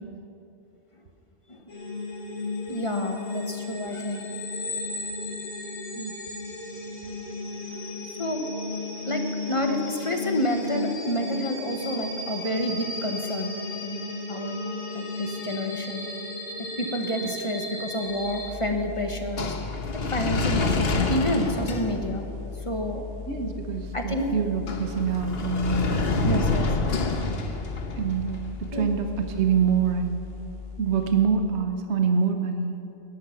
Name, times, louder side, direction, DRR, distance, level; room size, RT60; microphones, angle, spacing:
sound 1, 1.7-18.5, left 2 dB, 70° left, 3.5 m, -34 dB
voice 1, 2.7-4.3 8.2-8.4 9.0-14.6 14.9-16.1 16.6-22.3 22.6-23.0 23.9-24.3 26.2-26.7 28.7-28.9, left 1 dB, 25° left, 4 dB, 1.2 m, -29 dB
sound 2, 18.2-31.3, left 3 dB, 50° left, 1.3 m, -29 dB
voice 2, 23.2-25.9 26.2-26.4 28.0-30.2 30.8-32.8, right 6 dB, 60° right, 6 dB, 1.2 m, -25 dB
20.0 x 11.0 x 5.8 m, 3.0 s
omnidirectional pair, 1.3 m